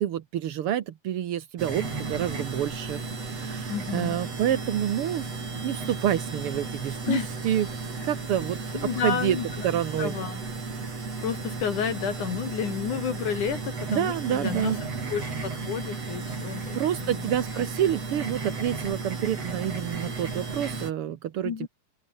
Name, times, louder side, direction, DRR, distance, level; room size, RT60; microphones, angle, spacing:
voice 1, 0.0-5.3 5.6-7.7 8.0-9.4 9.6-10.1 13.9-15.1 16.7-21.7, right 11 dB, 75° right, 1.3 m, -28 dB
sound 1, 1.6-20.9, right 4 dB, 40° right, 6.3 m, -34 dB
voice 2, 3.7-4.2 7.1-7.3 8.7-9.7 10.0-10.4 11.2-14.7 15.1-17.3 17.5-17.7 21.4-21.7, left 7 dB, 60° left, 3.4 m, -31 dB
open air
omnidirectional pair, 4.2 m